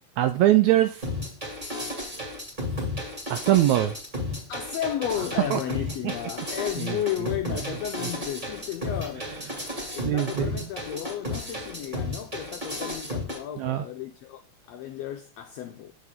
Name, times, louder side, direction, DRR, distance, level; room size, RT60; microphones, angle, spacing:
voice 1, 0.2-1.1 3.3-4.0 5.5-5.6 6.8-7.0 7.5-7.6 9.7-10.7 13.6-13.8, right 14 dB, 80° right, 1.7 m, -23 dB
sound 1, 1.0-13.4, left 1 dB, 15° right, 2.1 m, -33 dB
voice 2, 4.5-9.3 9.9-14.4 14.7-15.9, left 10 dB, 85° left, 1.5 m, -33 dB
7.8 x 7.1 x 3.7 m
omnidirectional pair, 3.7 m